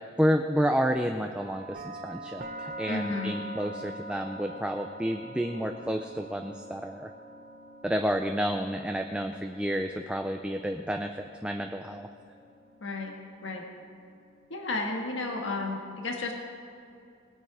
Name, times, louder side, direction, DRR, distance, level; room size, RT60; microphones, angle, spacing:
voice 1, 0.2-7.1 7.8-12.1, equal, 5° right, 4 dB, 0.4 m, -30 dB
sound 1, 1.4-15.3, right 1 dB, 45° right, 0.8 m, -45 dB
voice 2, 2.9-3.3 12.8-13.1 13.4-13.6 14.5-16.3, left 2 dB, 70° left, 1 dB, 1.6 m, -32 dB
20.0 x 8.5 x 4.9 m, 2.5 s
head